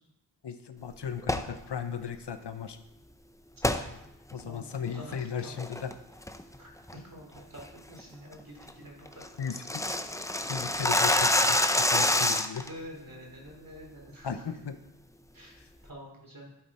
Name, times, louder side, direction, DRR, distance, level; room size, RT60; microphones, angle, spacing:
voice 1, 0.4-2.8 4.3-5.9 9.4-9.8 10.5-12.7 14.2-14.7 15.6-15.7, left 7 dB, 70° left, 10 dB, 0.8 m, -36 dB
sound 1, 1.2-1.5 3.6-3.8 4.3-4.4 5.0-5.2 5.6-5.9 6.3-6.6 6.9-7.0 7.4-7.6 8.0-8.1 8.4-8.5 8.7-8.8 9.1-12.7, left 1 dB, 10° left, 0.5 m, -26 dB
voice 2, 4.4-5.2 5.4-5.6 6.6-9.5 12.6-14.5 15.3-15.6 15.8-16.5, equal, 50° right, -1 dB, 3.5 m, -47 dB
12.0 x 7.6 x 4.3 m, 0.88 s
wide cardioid pair, 85°, 42 cm